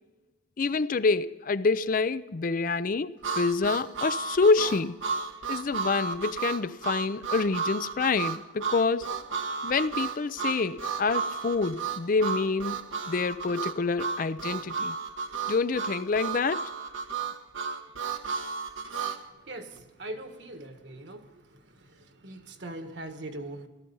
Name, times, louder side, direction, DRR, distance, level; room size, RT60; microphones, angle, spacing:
voice 1, 0.6-5.0 5.5-9.1 9.6-12.8 13.1-14.9 15.5-16.7, left 4 dB, 45° left, 0.5 m, -27 dB
Harmonica, 3.2-19.2, right 5 dB, 85° right, 1.3 m, -33 dB
voice 2, 19.5-21.2 22.2-23.7, right 1 dB, 60° right, 1.6 m, -40 dB
17.0 x 14.0 x 5.5 m
head